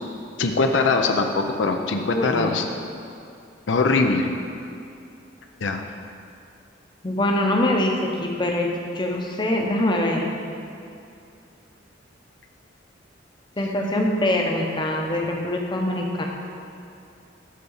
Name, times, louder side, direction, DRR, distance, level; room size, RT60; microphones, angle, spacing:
voice 1, 0.4-2.6 3.7-4.3 5.6-5.8, left 3 dB, 75° left, 5 dB, 0.6 m, -21 dB
voice 2, 1.9-2.5 7.0-7.9 8.2-10.3 13.6-16.3, left 1 dB, 25° left, 0 dB, 0.8 m, -24 dB
8.4 x 4.1 x 7.1 m, 2.6 s
head